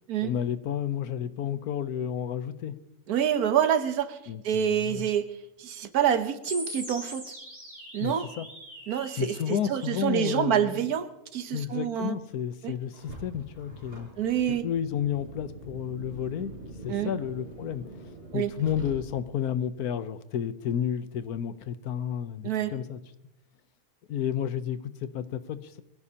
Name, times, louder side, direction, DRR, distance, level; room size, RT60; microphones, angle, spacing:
voice 1, 0.2-2.7 4.3-5.1 8.0-8.5 9.2-10.9 11.5-14.1 14.5-16.5 16.8-23.0 24.1-25.8, left 9 dB, 85° left, 13 dB, 1.3 m, -31 dB
voice 2, 3.1-4.2 4.4-5.2 5.6-7.2 7.9-8.3 8.9-12.2 12.6-12.8 14.2-14.6 16.9-17.1 18.3-18.5 22.4-22.7, right 9 dB, 80° right, 11 dB, 1.4 m, -27 dB
sound 1, 6.4-9.4, equal, 60° right, 7.3 m, -41 dB
Car, 12.9-19.4, right 2 dB, 40° right, 4.8 m, -44 dB
23.5 x 15.5 x 2.9 m, 0.88 s
omnidirectional pair, 1.6 m